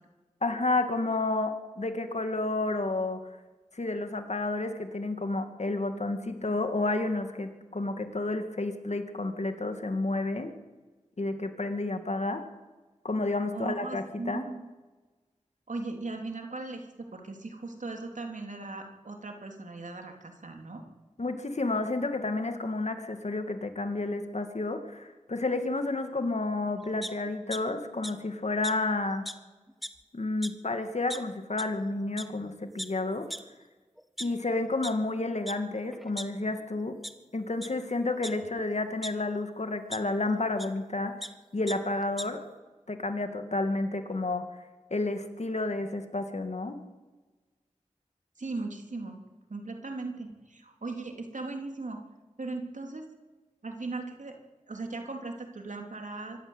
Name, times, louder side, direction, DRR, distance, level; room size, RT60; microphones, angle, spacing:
voice 1, 0.4-3.2 3.7-10.5 11.2-12.4 13.0-14.5 21.2-29.2 30.1-33.3 34.2-37.0 37.3-41.2 41.5-42.4 42.9-44.4 44.9-46.8, left 2 dB, 60° left, 7 dB, 2.5 m, -30 dB
voice 2, 13.5-14.6 15.7-20.8 48.4-49.2 49.5-52.0 52.4-53.0 53.6-54.3 54.7-56.4, right 3 dB, 75° right, 3 dB, 3.5 m, -38 dB
sound 1, 27.0-27.6 28.0-28.1 28.6-28.7 29.2-29.3 29.7-30.0 30.4-30.5 31.1-31.2 31.6-31.7 32.2-32.3 32.8-32.9 33.3-33.4 34.0-34.9 35.5-35.6 35.9-36.6 37.0-37.1 37.6-37.7 38.2-39.1 39.9-40.0 40.6-40.7 41.0-41.3 41.7-41.8 42.0-42.2, equal, ahead, 1.5 m, -38 dB
24.5 x 14.0 x 8.2 m, 1.2 s
cardioid pair, 40°, 13 cm